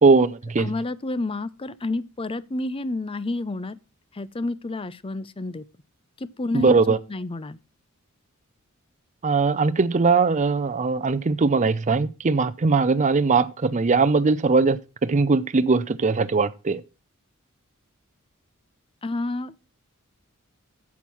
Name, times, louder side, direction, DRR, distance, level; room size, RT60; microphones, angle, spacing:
voice 1, 0.0-0.7 6.5-7.0 9.2-16.8, right 4 dB, 35° right, 0.5 m, -20 dB
voice 2, 0.6-3.8 4.1-5.6 6.2-7.6 19.0-19.5, left 2 dB, 25° left, 0.6 m, -30 dB
8.9 x 7.2 x 6.1 m
head